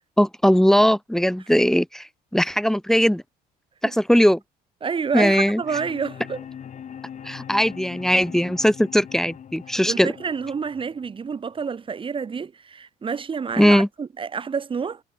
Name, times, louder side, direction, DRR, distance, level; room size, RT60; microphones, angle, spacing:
voice 1, 0.2-2.1 2.3-3.2 3.8-4.4 5.1-5.6 7.2-10.1 13.6-13.9, equal, 5° left, 1.5 m, -19 dB
voice 2, 4.8-6.4 9.9-15.0, right 6 dB, 30° right, 2.1 m, -28 dB
sound 1, 5.6-11.6, left 8 dB, 45° left, 7.2 m, -41 dB
cardioid pair, 110°, 17 cm